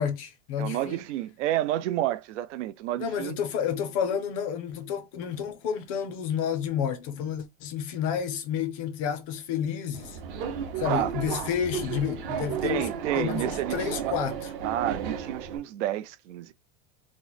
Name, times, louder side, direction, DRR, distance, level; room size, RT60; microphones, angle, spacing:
voice 1, 0.0-1.0 3.0-10.2 10.8-12.9 13.1-14.4, left 8 dB, 30° left, 0.4 m, -30 dB
voice 2, 0.6-3.4 10.9-11.2 12.6-14.2 14.6-16.5, right 13 dB, 85° right, 0.5 m, -30 dB
Subway metro underground, 9.9-15.6, right 7 dB, 50° right, 0.7 m, -33 dB
2.9 x 2.0 x 3.9 m
supercardioid pair, 170°, 35 cm